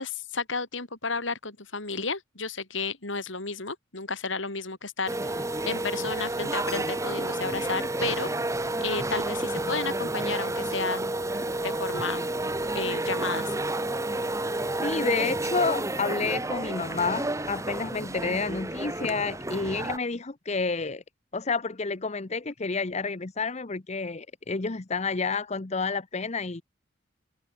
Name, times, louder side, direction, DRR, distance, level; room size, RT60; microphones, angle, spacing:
voice 1, 0.0-8.3 8.8-11.1 11.6-12.3 12.7-13.6, left 4 dB, 75° left, 4.2 m, -32 dB
sound 1, 5.1-20.0, right 2 dB, 15° right, 1.3 m, -30 dB
voice 2, 14.8-21.0 21.3-26.6, left 4 dB, 35° left, 0.8 m, -29 dB
head